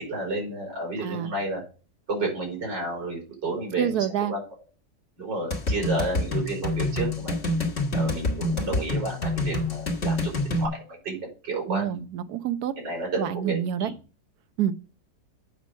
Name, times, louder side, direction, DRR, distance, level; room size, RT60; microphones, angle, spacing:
voice 1, 0.0-1.6 2.1-4.4 5.2-7.4 7.9-12.0 12.8-13.9, right 2 dB, 90° right, -2 dB, 5.1 m, -31 dB
voice 2, 1.0-1.3 3.8-4.3 11.7-12.7 13.2-13.9 14.6-14.7, right 10 dB, 65° right, 13 dB, 1.2 m, -27 dB
sound 1, 5.5-10.7, left 2 dB, 40° left, 1.7 m, -27 dB
8.3 x 6.0 x 6.2 m, 0.35 s
omnidirectional pair, 1.9 m